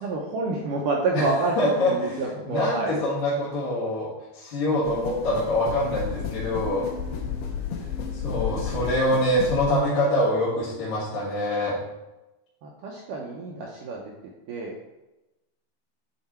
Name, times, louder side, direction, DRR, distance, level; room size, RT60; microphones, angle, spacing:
voice 1, 0.0-3.0 5.8-6.0 7.2-7.4 11.7-11.8 12.6-14.1 14.5-14.8, right 3 dB, 80° right, -1 dB, 2.0 m, -28 dB
voice 2, 1.6-4.1 4.3-6.8 8.2-11.8, left 1 dB, 65° left, -9 dB, 3.1 m, -25 dB
sound 1, 4.8-9.8, left 7 dB, 85° left, 2.9 m, -32 dB
9.5 x 4.5 x 4.3 m, 1.0 s
omnidirectional pair, 4.6 m